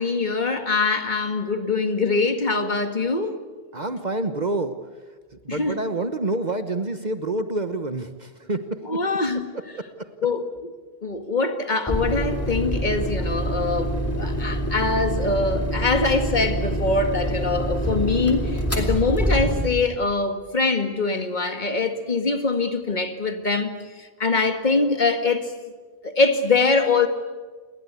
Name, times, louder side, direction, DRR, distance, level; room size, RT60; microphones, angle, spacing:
voice 1, 0.0-3.3 5.5-5.8 8.9-9.5 10.2-10.5 11.0-23.7 24.0-25.5 26.0-27.1, left 3 dB, 45° left, 2.1 m, -23 dB
voice 2, 3.7-4.8 5.4-9.0 9.8-10.1, right 2 dB, 45° right, 1.2 m, -28 dB
sound 1, 11.9-19.9, equal, 15° left, 3.4 m, -26 dB
28.5 x 21.5 x 8.4 m
omnidirectional pair, 1.0 m